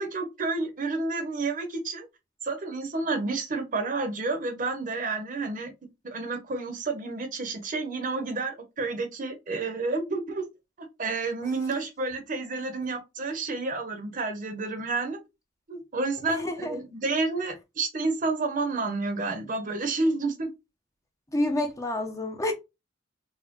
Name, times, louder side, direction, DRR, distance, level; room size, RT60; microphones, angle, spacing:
voice 1, 0.0-2.1 2.4-5.7 6.1-10.5 10.8-15.2 15.7-20.5, right 3 dB, 45° right, 0.8 m, -30 dB
voice 2, 16.3-16.8 21.3-22.5, left 1 dB, 15° left, 0.6 m, -28 dB
4.1 x 2.1 x 2.9 m
head